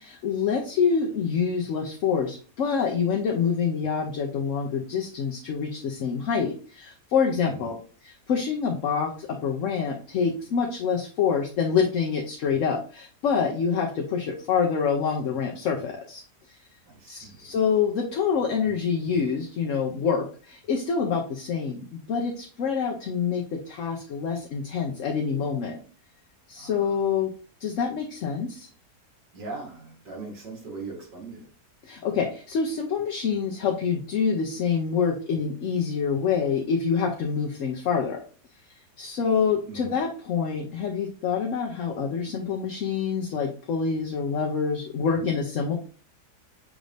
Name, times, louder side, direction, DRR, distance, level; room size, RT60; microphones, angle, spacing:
voice 1, 0.0-7.8 8.0-16.2 17.1-25.8 26.5-27.3 27.6-28.7 31.8-38.2 39.0-45.7, left 6 dB, 60° left, 1 dB, 0.9 m, -26 dB
voice 2, 7.4-7.8 16.9-17.6 26.5-27.1 29.3-31.5 39.6-40.0, right 3 dB, 90° right, -3 dB, 2.5 m, -40 dB
6.1 x 2.6 x 3.2 m, 0.41 s
omnidirectional pair, 1.7 m